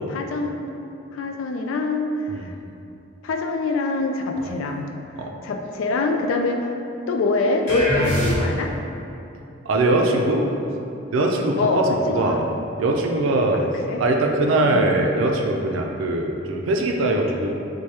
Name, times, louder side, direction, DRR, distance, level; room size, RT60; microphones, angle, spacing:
voice 1, 0.1-0.6 1.1-2.3 3.2-4.9 5.4-6.7 7.1-8.7 11.6-11.8 12.1-12.5 13.5-14.0 14.6-14.8, left 3 dB, 85° left, 3 dB, 0.3 m, -24 dB
sound 1, 7.7-8.8, equal, 45° left, 1.2 m, -23 dB
voice 2, 9.6-10.5 11.1-12.5 12.8-13.6 14.0-17.5, right 2 dB, 80° right, 1 dB, 0.4 m, -21 dB
4.5 x 2.2 x 2.8 m, 2.8 s
head